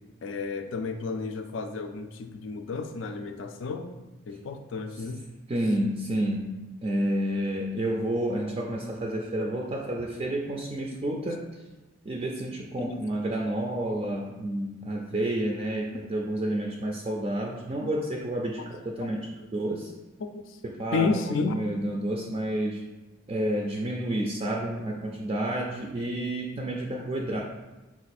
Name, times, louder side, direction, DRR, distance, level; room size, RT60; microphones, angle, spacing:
voice 1, 0.2-3.9 4.3-5.2 12.8-12.9 15.9-16.0 17.8-17.9 19.0-19.2 20.2-20.4 20.9-21.5, left 4 dB, 70° left, 7 dB, 0.4 m, -32 dB
voice 2, 5.5-11.4 12.1-19.9 20.6-22.8 23.3-27.4, right 1 dB, 30° right, 0 dB, 0.4 m, -30 dB
4.2 x 2.4 x 4.1 m, 1.1 s
head